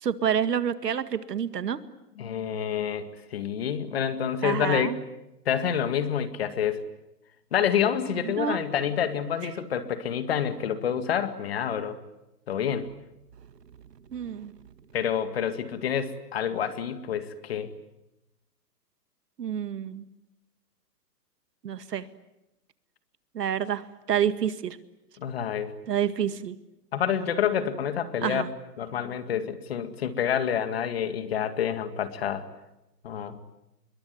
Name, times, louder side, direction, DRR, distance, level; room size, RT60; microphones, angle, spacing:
voice 1, 0.0-1.8 4.4-4.9 8.2-8.6 14.1-14.5 19.4-20.1 21.6-22.0 23.3-24.8 25.9-26.6 28.2-28.5, right 8 dB, 75° right, 12 dB, 2.0 m, -28 dB
voice 2, 2.2-4.9 5.5-6.8 7.5-12.0 12.5-12.9 14.9-17.7 25.2-25.7 26.9-28.4 28.8-32.4 33.0-33.4, left 8 dB, 40° left, 11 dB, 2.1 m, -28 dB
26.5 x 23.0 x 9.4 m, 0.92 s
hypercardioid pair, 175°, 49 cm